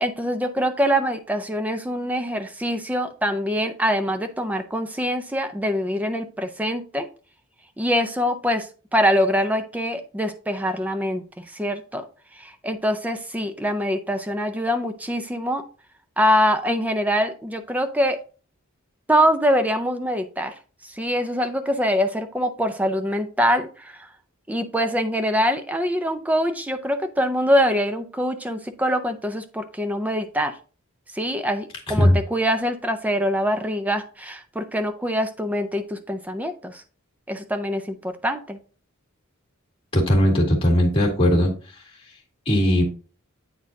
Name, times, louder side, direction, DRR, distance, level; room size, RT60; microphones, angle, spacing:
voice 1, 0.0-7.1 7.8-12.0 12.3-15.6 16.2-18.2 19.1-20.5 20.8-24.1 24.5-30.5 31.1-36.8 37.3-38.6, equal, 5° right, 8 dB, 0.4 m, -24 dB
voice 2, 31.9-32.2 39.9-41.5 42.5-42.8, equal, 25° left, -1 dB, 1.9 m, -18 dB
8.5 x 4.2 x 2.6 m, 0.37 s
head